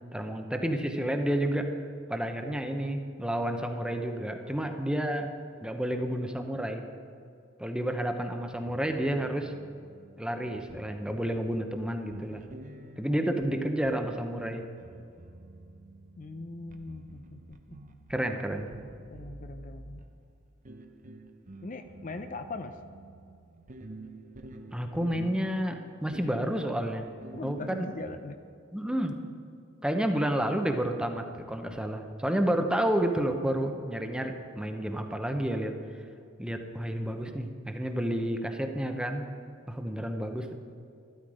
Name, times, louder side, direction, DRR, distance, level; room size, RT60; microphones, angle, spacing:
voice 1, 0.1-1.8 2.1-5.3 5.6-6.8 7.6-9.5 10.2-12.4 13.0-14.6 18.1-18.7 24.7-27.1 27.4-27.9 28.7-29.2 29.8-35.8 36.4-39.2 39.7-40.5, right 1 dB, 5° right, 5 dB, 0.9 m, -30 dB
sound 1, 8.5-28.2, right 2 dB, 40° right, 0.8 m, -49 dB
voice 2, 16.2-17.8 19.1-20.1 21.6-22.8 27.3-28.4 32.3-32.4, left 3 dB, 40° left, 8 dB, 0.6 m, -41 dB
13.5 x 13.0 x 4.9 m, 2.5 s
head